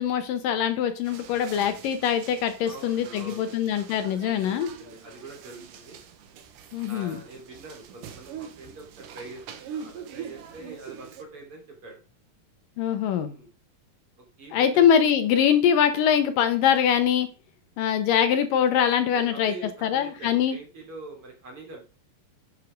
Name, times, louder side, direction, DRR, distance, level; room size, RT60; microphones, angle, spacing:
voice 1, 0.0-4.7 6.7-7.2 12.8-13.3 14.5-17.3 17.8-19.5 19.8-20.6, left 8 dB, 75° left, 9 dB, 2.5 m, -23 dB
sound 1, 1.0-11.2, right 8 dB, 70° right, 2.7 m, -43 dB
voice 2, 2.6-3.6 4.3-6.0 6.8-12.0 13.2-13.5 14.2-14.8 15.2-15.3 19.0-21.9, right 2 dB, 35° right, 1 dB, 4.0 m, -44 dB
10.0 x 7.6 x 5.2 m, 0.33 s
omnidirectional pair, 4.2 m